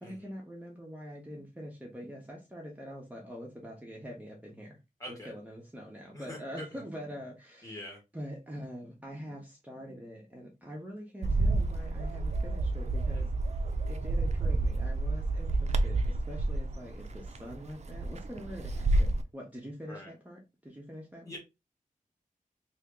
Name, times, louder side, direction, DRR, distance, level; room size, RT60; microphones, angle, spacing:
voice 1, 0.0-4.8 5.1-13.3 13.9-21.3, equal, 10° right, -2 dB, 0.8 m, -44 dB
voice 2, 5.0-5.3 6.1-6.7 7.6-8.0 13.1-13.3 19.9-20.1 21.2-21.4, left 1 dB, 25° left, 1 dB, 1.4 m, -44 dB
Bird, 11.2-19.2, right 2 dB, 50° right, 0.4 m, -29 dB
2.8 x 2.8 x 3.4 m, 0.25 s
wide cardioid pair, 125°, 14 cm